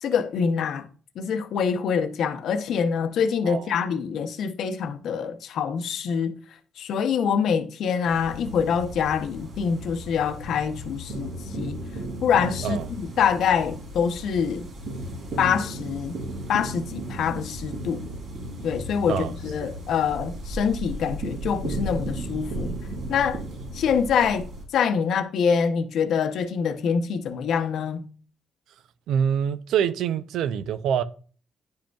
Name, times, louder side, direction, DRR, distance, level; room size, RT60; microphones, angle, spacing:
voice 1, 0.0-0.9 1.2-6.4 6.8-11.8 12.2-14.7 15.4-16.2 16.5-18.1 18.6-22.7 23.1-23.4 23.7-24.4 24.7-28.0, left 7 dB, 75° left, 0.7 m, -25 dB
voice 2, 3.4-3.8 12.6-12.9 19.1-19.3 29.1-31.0, right 8 dB, 80° right, 0.4 m, -25 dB
sound 1, 8.0-24.6, right 1 dB, 65° right, 3.0 m, -35 dB
10.0 x 5.1 x 2.3 m
cardioid pair, 90°, 0 cm